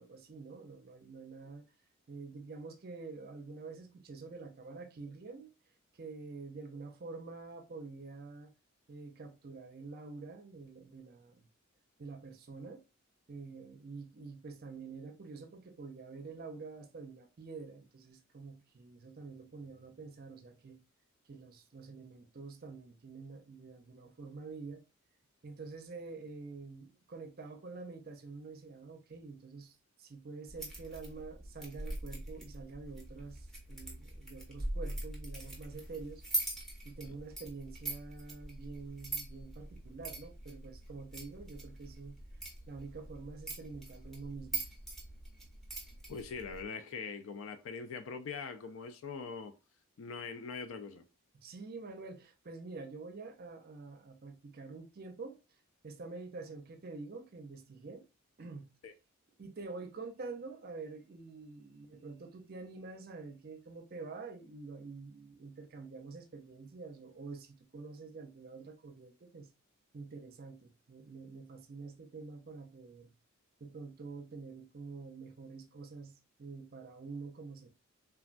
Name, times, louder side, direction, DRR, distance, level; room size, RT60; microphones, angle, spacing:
voice 1, 0.0-1.6 2.1-5.5 5.9-8.5 8.9-11.5 12.0-12.8 13.3-20.8 21.3-24.8 25.4-36.2 36.9-42.2 42.7-44.7 51.3-55.4 55.8-58.0 58.4-58.7 59.4-69.5 69.9-73.1 73.6-77.7, right 4 dB, 45° right, 0.5 m, -47 dB
sound 1, 30.5-46.6, right 2 dB, ahead, 0.8 m, -43 dB
voice 2, 46.1-49.6 50.0-51.0 58.8-58.9, left 5 dB, 70° left, 0.4 m, -42 dB
3.3 x 2.2 x 2.4 m
head